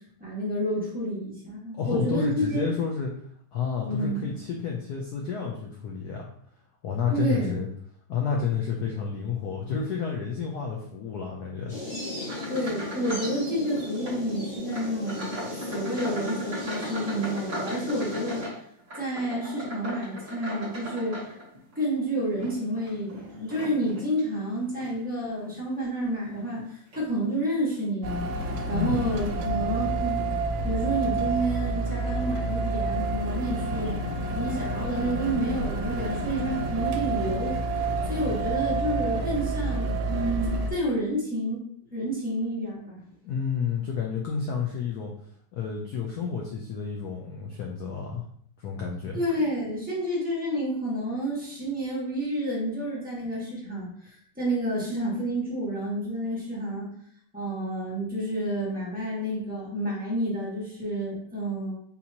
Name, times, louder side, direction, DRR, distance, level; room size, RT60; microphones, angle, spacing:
voice 1, 0.2-2.6 3.8-4.3 7.1-7.5 12.5-15.4 15.7-18.4 19.0-21.3 21.7-30.2 30.6-34.0 34.3-37.6 38.1-41.6 41.9-43.0 49.1-56.9 57.3-61.7, right 1 dB, 5° right, -7 dB, 1.0 m, -29 dB
voice 2, 1.7-3.1 3.5-6.3 6.8-7.7 8.1-11.7 28.7-29.1 43.2-45.1 45.5-48.2 48.6-49.2, left 6 dB, 75° left, -1 dB, 0.8 m, -30 dB
sound 1, 11.7-18.5, left 2 dB, 25° left, 0.8 m, -36 dB
sound 2, 12.2-13.4 13.6-14.2 14.7-21.8 22.3-24.1 24.7-25.0 25.5-25.6 26.5-26.6 26.9-27.1, right 1 dB, 30° right, 1.4 m, -39 dB
sound 3, 28.0-40.7, right 2 dB, 85° right, 1.4 m, -29 dB
4.2 x 2.7 x 2.7 m, 0.64 s
omnidirectional pair, 2.2 m